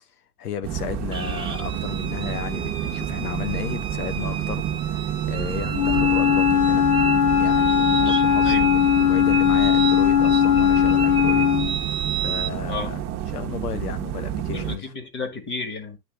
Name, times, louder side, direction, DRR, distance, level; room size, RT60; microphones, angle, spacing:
voice 1, 0.4-6.9 7.4-11.5 12.1-14.9, left 9 dB, 85° left, 1.0 m, -34 dB
sound 1, 0.6-14.8, right 10 dB, 35° right, 1.1 m, -29 dB
sound 2, 1.1-12.5, right 8 dB, 10° right, 1.1 m, -32 dB
Wind instrument woodwind instrument, 5.7-11.8, left 9 dB, 60° left, 0.8 m, -19 dB
voice 2, 14.5-16.0, left 4 dB, 25° left, 1.8 m, -32 dB
9.9 x 3.3 x 3.3 m
hypercardioid pair, 105°, 45 cm